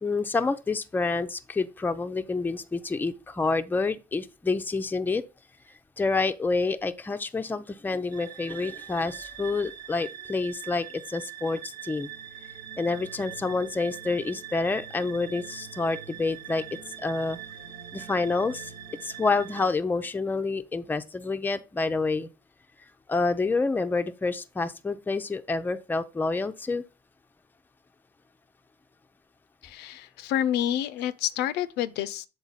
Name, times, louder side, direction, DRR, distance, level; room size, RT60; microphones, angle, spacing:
voice 1, 0.0-5.2 6.0-12.1 12.8-16.6 17.0-17.4 17.9-18.7 19.0-22.3 23.1-26.8, left 3 dB, 10° left, 0.4 m, -28 dB
sound 1, 8.1-19.7, right 10 dB, 70° right, 0.8 m, -42 dB
voice 2, 29.6-32.3, left 11 dB, 85° left, 0.5 m, -28 dB
7.2 x 3.8 x 3.9 m
cardioid pair, 110°, 17 cm